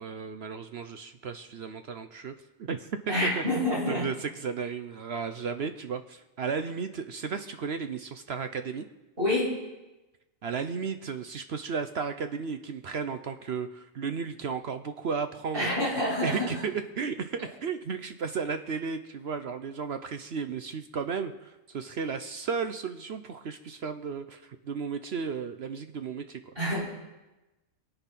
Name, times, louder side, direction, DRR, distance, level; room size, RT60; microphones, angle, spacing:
voice 1, 0.0-8.8 10.4-15.7 16.2-26.4, right 5 dB, 55° right, 8 dB, 0.9 m, -34 dB
voice 2, 3.1-4.0 9.2-9.5 15.5-16.5 26.6-26.8, left 1 dB, 40° right, -6 dB, 7.0 m, -27 dB
23.0 x 8.2 x 5.9 m, 1.1 s
omnidirectional pair, 1.4 m